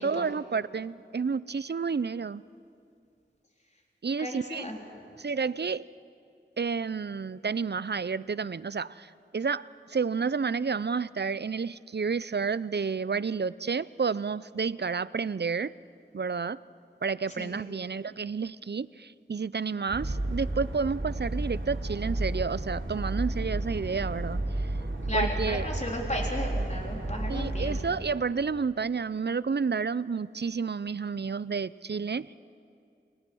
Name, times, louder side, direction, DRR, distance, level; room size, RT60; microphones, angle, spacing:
voice 1, 0.0-2.4 4.0-4.6 5.2-5.9 6.6-15.7 16.1-16.6 17.0-24.7 25.1-25.7 27.3-32.3, right 5 dB, 55° right, 18 dB, 0.5 m, -30 dB
voice 2, 4.2-4.8 17.4-17.5 25.1-27.8, left 1 dB, 35° left, 0 dB, 3.8 m, -34 dB
sound 1, 19.9-27.9, right 1 dB, 75° right, 3.3 m, -32 dB
29.5 x 21.5 x 6.3 m, 2.4 s
wide cardioid pair, 40°, 20 cm